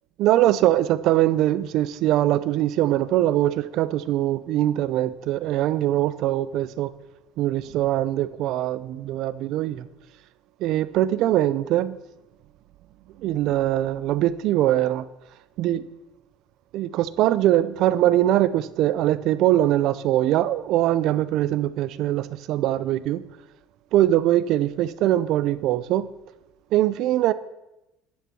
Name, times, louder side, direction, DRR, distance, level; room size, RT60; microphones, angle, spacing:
voice 1, 0.2-6.9 7.4-9.9 10.6-11.9 13.2-15.1 15.6-15.8 16.7-23.2 23.9-26.1 26.7-27.3, right 13 dB, 50° right, 0.5 m, -22 dB
10.5 x 7.1 x 6.1 m
cardioid pair, 175°, 0 cm